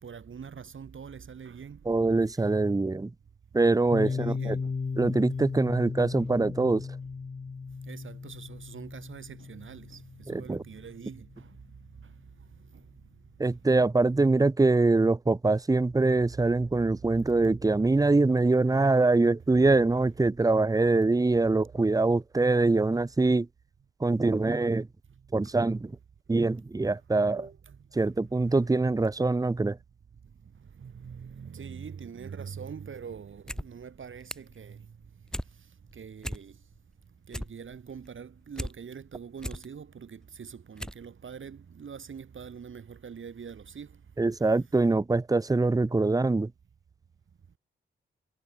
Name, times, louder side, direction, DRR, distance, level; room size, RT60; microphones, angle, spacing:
voice 1, 0.0-1.8 4.0-4.7 7.9-11.5 12.7-12.8 13.4-13.5 25.7-25.8 27.2-27.8 28.6-28.7 30.8-34.9 35.9-36.6 37.3-43.9, right 6 dB, 70° right, 4.3 m, -44 dB
voice 2, 1.9-3.1 3.5-4.6 5.0-6.9 10.3-10.6 13.4-23.5 24.0-24.9 25.3-25.9 26.3-27.5 28.0-29.8 44.2-46.5, right 3 dB, 15° right, 0.7 m, -24 dB
Piano, 3.9-11.4, left 4 dB, 35° left, 0.9 m, -36 dB
sound 1, 33.3-33.7 33.9-34.6 34.9-35.5 35.9-36.0 36.2-36.8 37.1-38.7 39.1-39.7 40.2-40.3 40.8-41.0 41.3-41.4, equal, 5° left, 7.2 m, -37 dB
cardioid pair, 55°, 21 cm